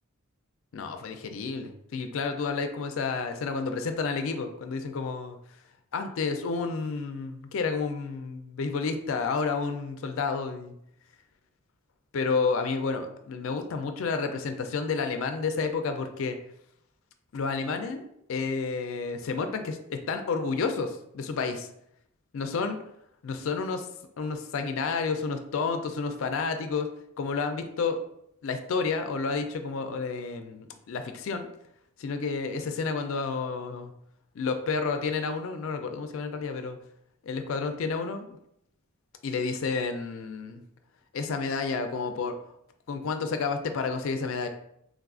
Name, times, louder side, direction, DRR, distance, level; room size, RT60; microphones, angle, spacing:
voice 1, 0.7-5.4 5.9-10.7 12.1-16.4 17.3-21.7 22.3-22.8 23.2-23.9 24.2-26.9 27.2-28.0 28.4-31.5 32.0-33.9 34.4-36.8 37.2-38.3 39.2-40.6 41.1-42.4 42.9-44.5, left 4 dB, 65° left, 7 dB, 0.3 m, -30 dB
3.4 x 2.3 x 2.3 m, 0.74 s
head